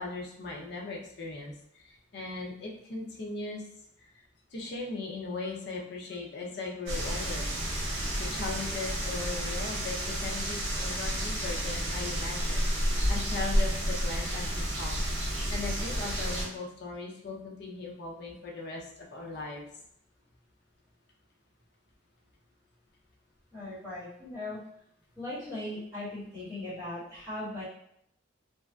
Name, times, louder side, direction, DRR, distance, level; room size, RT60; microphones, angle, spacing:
voice 1, 0.0-3.6 4.0-4.2 4.5-7.5 8.2-12.7 13.1-15.0 15.5-19.7, left 3 dB, 55° left, -1 dB, 0.5 m, -38 dB
sound 1, 6.9-16.5, equal, 70° right, 0.8 m, -31 dB
voice 2, 23.5-24.6 25.2-27.6, left 1 dB, 15° right, -11 dB, 1.2 m, -38 dB
2.6 x 2.4 x 2.2 m, 0.74 s
head